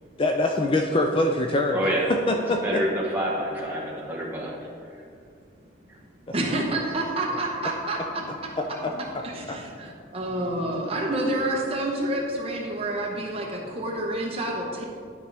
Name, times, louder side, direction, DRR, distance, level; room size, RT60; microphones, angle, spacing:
voice 1, 0.2-2.8 8.8-9.6, left 2 dB, 25° left, 2 dB, 0.4 m, -25 dB
voice 2, 1.7-2.1 2.6-4.6, equal, 10° right, -4 dB, 1.2 m, -27 dB
voice 3, 6.3-8.2 8.9-14.8, right 1 dB, 30° right, -1 dB, 0.9 m, -28 dB
11.0 x 5.2 x 3.4 m, 2.3 s
head